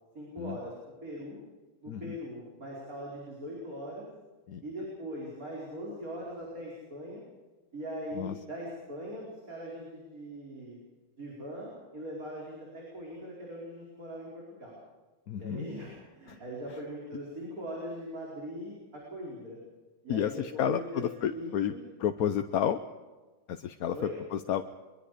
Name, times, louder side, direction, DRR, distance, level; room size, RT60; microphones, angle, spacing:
voice 1, 0.2-0.7 1.0-1.4 1.8-4.1 4.6-7.2 7.7-10.8 11.2-14.8 15.4-19.6 20.0-21.0 21.3-21.8 23.9-24.1, equal, 80° right, -4 dB, 5.5 m, -40 dB
voice 2, 1.9-2.2 4.5-4.6 8.2-8.3 15.3-15.7 16.3-16.4 20.1-21.7 22.0-22.8 23.5-24.0 24.3-24.6, left 9 dB, 85° left, 8 dB, 1.3 m, -31 dB
23.5 x 23.0 x 5.1 m, 1.3 s
omnidirectional pair, 1.5 m